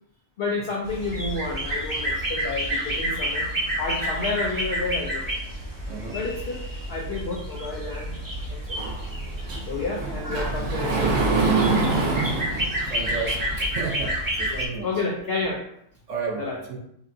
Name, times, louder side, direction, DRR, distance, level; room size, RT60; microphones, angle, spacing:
voice 1, 0.4-3.5 3.8-5.2 6.1-6.6 6.9-8.2 8.5-8.8 9.7-11.7 12.0-12.3 14.5-15.6 16.4-16.6, left 3 dB, 90° left, -1 dB, 0.5 m, -30 dB
sound 1, 0.8-14.7, equal, 25° right, 0.4 m, -30 dB
voice 2, 5.9-6.2 12.9-14.9 16.1-16.8, right 5 dB, 60° right, 0 dB, 1.0 m, -32 dB
Sliding door, 8.8-13.7, right 3 dB, 80° right, 1.3 m, -26 dB
5.1 x 2.5 x 2.6 m, 0.73 s
omnidirectional pair, 1.6 m